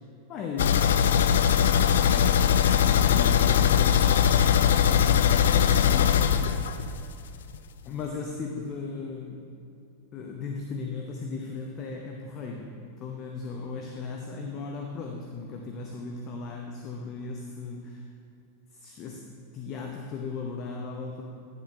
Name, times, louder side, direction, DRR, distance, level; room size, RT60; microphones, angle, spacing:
voice 1, 0.3-1.5 2.1-6.9 7.8-9.5 10.1-18.0 18.7-19.2 19.5-21.2, left 4 dB, 35° left, 2 dB, 0.7 m, -37 dB
sound 1, 0.6-7.3 7.5-7.6 8.0-8.1, left 8 dB, 60° left, 0.3 m, -21 dB
10.0 x 7.2 x 3.5 m, 2.6 s
figure-of-eight pair, 90°, 0 cm